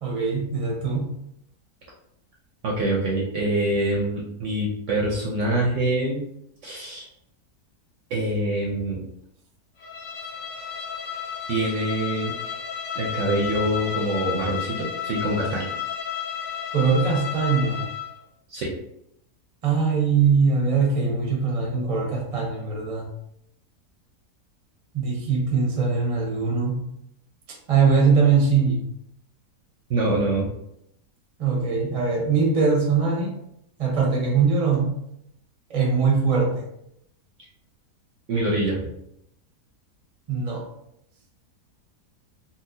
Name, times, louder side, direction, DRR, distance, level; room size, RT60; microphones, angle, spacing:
voice 1, 0.0-1.1 16.7-17.9 19.6-23.1 24.9-26.8 27.7-28.8 31.4-33.3 33.8-35.0 35.7-36.7 40.3-40.7, right 5 dB, 35° right, -1 dB, 0.6 m, -22 dB
voice 2, 2.6-6.2 6.6-7.1 8.1-9.0 11.5-12.3 12.9-15.6 18.5-18.7 29.9-30.5 38.3-38.8, right 1 dB, 60° right, -3 dB, 0.8 m, -25 dB
Bowed string instrument, 9.8-18.2, left 8 dB, 90° left, 1.4 m, -32 dB
4.0 x 2.3 x 2.6 m, 0.76 s
omnidirectional pair, 1.7 m